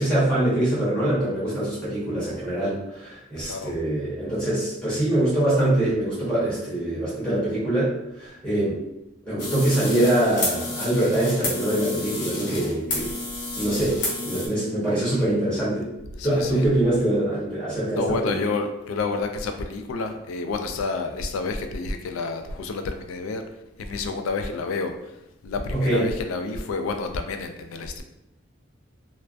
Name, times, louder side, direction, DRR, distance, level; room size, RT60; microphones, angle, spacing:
voice 1, 0.0-7.9 8.2-8.7 9.2-13.1 13.6-14.0 14.2-15.9 16.2-18.4 25.7-26.0, right 1 dB, 5° left, -10 dB, 0.8 m, -24 dB
sound 1, 9.4-14.5, left 2 dB, 55° left, 0.7 m, -30 dB
voice 2, 16.1-16.7 18.0-23.4 23.8-25.1 25.4-28.0, left 3 dB, 85° left, 6 dB, 0.3 m, -29 dB
2.3 x 2.2 x 2.4 m, 0.89 s
head